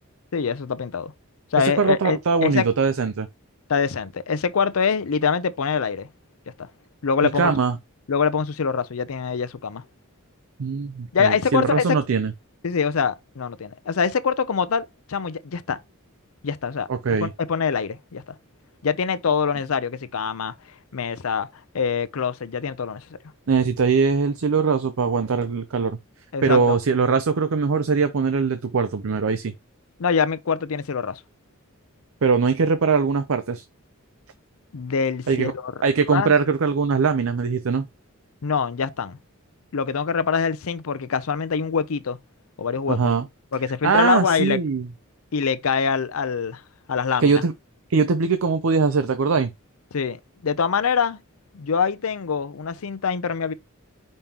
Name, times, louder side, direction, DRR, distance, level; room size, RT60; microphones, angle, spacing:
voice 1, 0.3-1.1 1.5-2.7 3.7-6.1 6.5-6.7 7.0-7.5 8.1-9.8 11.1-12.0 12.6-15.8 16.4-16.9 17.2-18.3 18.8-20.5 20.9-21.5 21.7-23.1 26.3-26.8 30.0-31.2 34.7-35.7 36.1-36.3 38.4-39.2 39.7-42.2 42.6-43.1 43.5-44.6 45.3-46.6 46.9-47.4 49.9-51.2 51.5-53.5, left 6 dB, 75° left, 0.6 m, -24 dB
voice 2, 1.6-3.3 7.4-7.8 10.6-12.3 16.9-17.3 23.5-26.0 26.4-29.5 32.2-33.6 35.3-35.5 35.8-37.9 42.9-43.2 43.8-44.9 47.2-47.5 47.9-49.5, right 5 dB, 70° right, 0.5 m, -21 dB
5.3 x 3.5 x 2.8 m
head